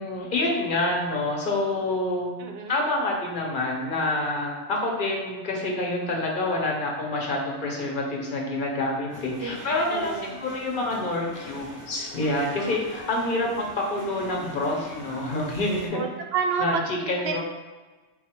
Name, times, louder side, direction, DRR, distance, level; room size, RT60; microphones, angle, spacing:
voice 1, 0.0-2.3 2.7-16.0 16.6-16.8 17.1-17.4, left 2 dB, 50° left, 0 dB, 0.8 m, -27 dB
voice 2, 2.4-2.8 9.4-10.4 13.2-13.5 15.9-17.4, right 5 dB, 65° right, 2 dB, 0.8 m, -30 dB
sound 1, 9.1-15.9, equal, 20° right, 0.6 m, -43 dB
4.1 x 2.4 x 4.3 m, 1.2 s
omnidirectional pair, 1.3 m